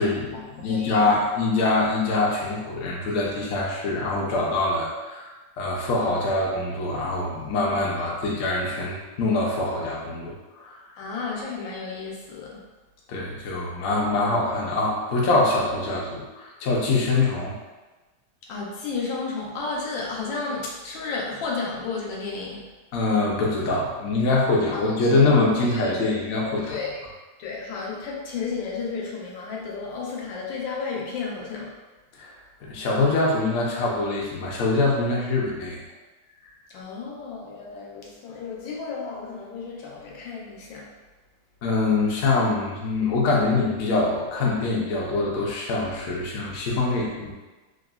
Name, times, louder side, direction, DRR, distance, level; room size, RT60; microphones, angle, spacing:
voice 1, 0.0-5.3 5.6-10.8 13.1-17.6 22.9-26.8 32.2-32.3 32.6-35.8 41.6-47.3, left 3 dB, 65° left, -3 dB, 0.8 m, -24 dB
voice 2, 0.6-1.2 8.0-8.1 11.0-12.6 18.5-22.6 24.7-25.1 25.7-25.8 26.7-27.0 27.4-31.7 36.7-40.9, left 4 dB, 90° left, -3 dB, 1.4 m, -32 dB
3.7 x 2.0 x 2.3 m, 1.2 s
omnidirectional pair, 2.0 m